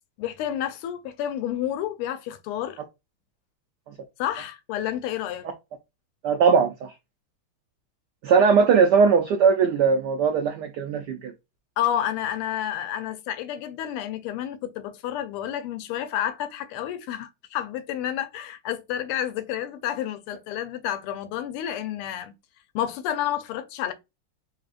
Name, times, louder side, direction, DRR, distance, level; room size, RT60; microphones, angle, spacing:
voice 1, 0.2-2.8 4.2-5.5 11.8-22.3 22.7-23.9, left 11 dB, 90° left, 1.5 m, -30 dB
voice 2, 6.2-6.9 8.2-11.3, right 5 dB, 90° right, 0.9 m, -19 dB
4.0 x 3.3 x 2.4 m
omnidirectional pair, 2.4 m